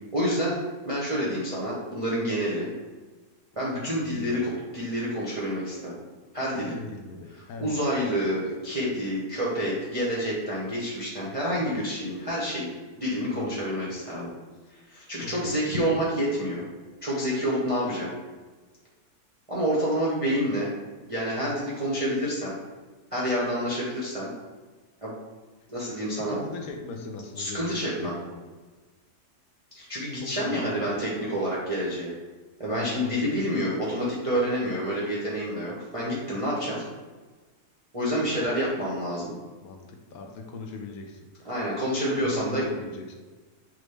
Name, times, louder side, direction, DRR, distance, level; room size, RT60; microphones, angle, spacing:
voice 1, 0.1-2.7 3.6-5.9 6.3-6.7 7.6-12.7 12.9-14.3 14.7-16.6 17.0-18.1 19.5-20.7 21.1-22.6 23.1-24.3 25.0-25.2 25.7-26.4 27.4-28.1 29.7-32.1 32.6-36.8 37.9-39.3 41.4-42.6, equal, 35° right, -7 dB, 0.5 m, -28 dB
voice 2, 4.0-4.5 6.5-7.8 13.3-13.9 15.1-15.6 26.1-28.4 30.2-30.9 32.7-33.3 39.6-41.5 42.1-43.1, left 4 dB, 70° left, 3 dB, 1.0 m, -40 dB
6.1 x 2.1 x 3.2 m, 1.3 s
omnidirectional pair, 1.7 m